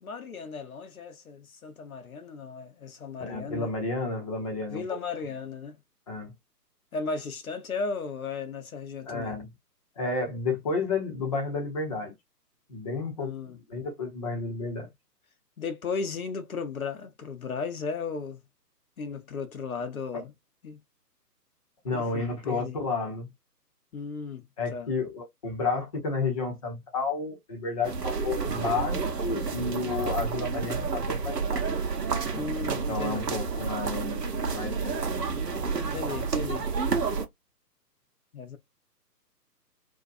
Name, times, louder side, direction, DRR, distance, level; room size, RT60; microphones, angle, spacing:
voice 1, 0.0-3.7 4.7-5.8 6.9-9.3 13.2-13.6 15.6-18.4 19.0-20.3 20.6-20.8 21.9-22.8 23.9-24.9 32.3-33.3 35.9-36.7 38.3-38.6, left 4 dB, 60° left, 0.7 m, -35 dB
voice 2, 3.2-5.0 6.1-6.3 9.0-9.5 10.0-12.1 12.7-14.9 21.8-23.3 24.6-31.7 32.9-35.7, left 4 dB, 20° left, 0.7 m, -31 dB
sound 1, 27.8-37.3, right 5 dB, 75° right, 0.8 m, -30 dB
2.6 x 2.1 x 2.5 m
figure-of-eight pair, 135°, 49 cm